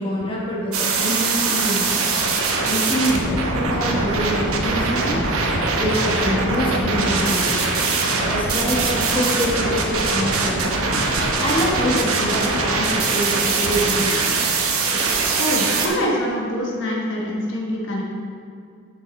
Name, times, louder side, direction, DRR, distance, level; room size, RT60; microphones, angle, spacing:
voice 1, 0.0-2.1 2.6-5.2 5.8-7.7 8.2-10.9 11.4-14.4 14.9-15.1, equal, 25° left, -4 dB, 1.2 m, -25 dB
sound 1, 0.7-15.9, right 3 dB, 75° right, 0.9 m, -22 dB
voice 2, 15.4-18.0, equal, 55° left, -2 dB, 1.1 m, -24 dB
6.7 x 6.2 x 4.2 m, 2.4 s
head